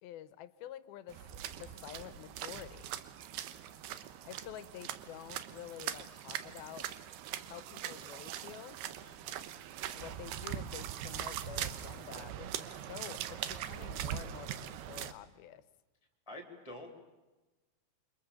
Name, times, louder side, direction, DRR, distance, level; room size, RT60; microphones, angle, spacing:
voice 1, 0.0-2.9 4.2-6.9 7.4-8.8 9.9-15.6, left 11 dB, 80° left, 15 dB, 2.8 m, -49 dB
sound 1, 1.1-15.1, right 11 dB, 85° right, 3.1 m, -41 dB
voice 2, 9.0-9.4 16.3-16.9, left 1 dB, 10° left, 4 dB, 3.0 m, -48 dB
28.5 x 24.5 x 7.1 m, 1.2 s
omnidirectional pair, 4.4 m